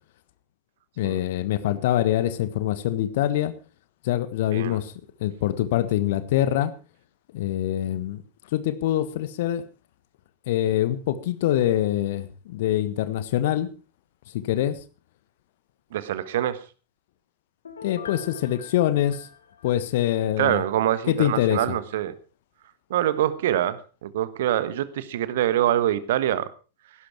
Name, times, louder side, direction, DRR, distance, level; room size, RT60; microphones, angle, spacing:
voice 1, 1.0-3.5 4.0-4.9 5.2-6.7 7.3-8.2 8.5-9.6 10.5-13.7 14.3-14.8 17.8-19.3 19.6-20.6 21.1-21.8, left 12 dB, 55° left, 13 dB, 1.4 m, -24 dB
voice 2, 15.9-16.6 20.4-22.2 22.9-26.5, right 12 dB, 55° right, 15 dB, 1.2 m, -25 dB
Piano, 17.7-20.3 20.7-20.8, left 6 dB, 70° left, 1.8 m, -43 dB
16.0 x 12.0 x 4.6 m, 0.34 s
figure-of-eight pair, 90°, 0 cm